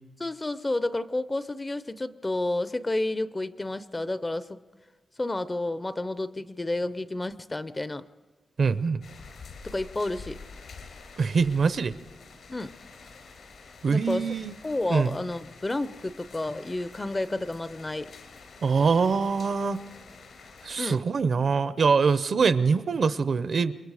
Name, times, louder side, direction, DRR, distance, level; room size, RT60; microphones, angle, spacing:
voice 1, 0.2-4.6 5.2-8.1 9.6-10.4 12.5-12.7 13.9-14.3 14.6-18.1 20.8-21.0, left 2 dB, 20° left, 13 dB, 0.6 m, -30 dB
voice 2, 8.6-9.0 11.2-11.9 13.8-14.5 14.9-15.2 18.6-19.8 20.6-23.7, right 5 dB, 50° right, 14 dB, 0.7 m, -24 dB
sound 1, 9.0-20.7, left 4 dB, 75° left, 4.1 m, -48 dB
28.0 x 23.0 x 4.9 m, 1.3 s
wide cardioid pair, 165°, 0 cm